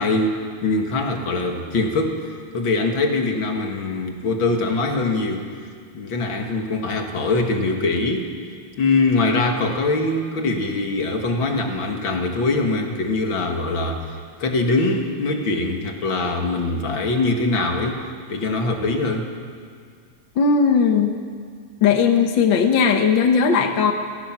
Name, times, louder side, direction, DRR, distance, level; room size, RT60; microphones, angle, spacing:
voice 1, 0.0-2.2 2.5-5.5 5.9-8.3 8.8-18.0 18.3-19.3, left 3 dB, 40° left, 3 dB, 2.2 m, -22 dB
voice 2, 20.3-21.2 21.8-23.9, left 6 dB, 80° left, 5 dB, 1.0 m, -17 dB
29.5 x 17.0 x 6.1 m, 2.1 s
omnidirectional pair, 4.1 m